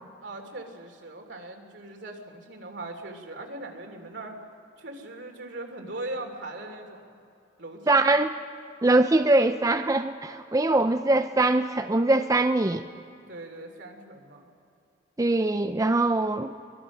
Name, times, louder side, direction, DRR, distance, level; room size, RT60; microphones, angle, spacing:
voice 1, 0.2-4.4 4.8-7.2 7.6-8.1 10.8-11.0 13.3-14.5, right 2 dB, 65° right, 3 dB, 3.0 m, -40 dB
voice 2, 7.9-8.3 8.8-12.9 15.2-16.5, right 2 dB, 20° right, 7 dB, 0.5 m, -22 dB
24.0 x 22.5 x 6.2 m, 2.7 s
head